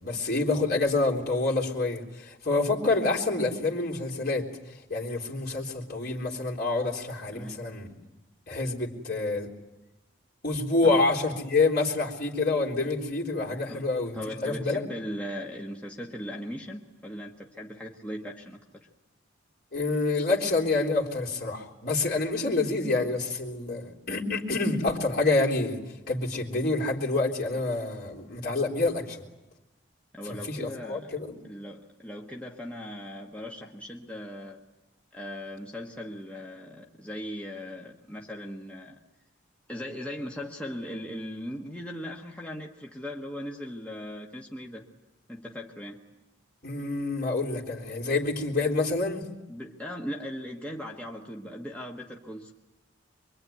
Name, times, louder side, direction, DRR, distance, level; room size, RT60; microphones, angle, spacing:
voice 1, 0.0-4.5 4.9-7.9 8.5-9.5 10.4-14.8 19.7-25.8 26.1-29.2 30.2-31.4 46.6-49.2, left 3 dB, 50° left, -1 dB, 3.7 m, -27 dB
voice 2, 7.3-7.7 10.8-11.0 13.7-13.9 14.1-18.6 30.1-31.2 31.4-34.6 35.1-39.0 39.7-44.9 45.3-46.1 49.5-52.5, equal, 5° left, -1 dB, 1.4 m, -39 dB
25.0 x 23.5 x 9.3 m, 1.0 s
head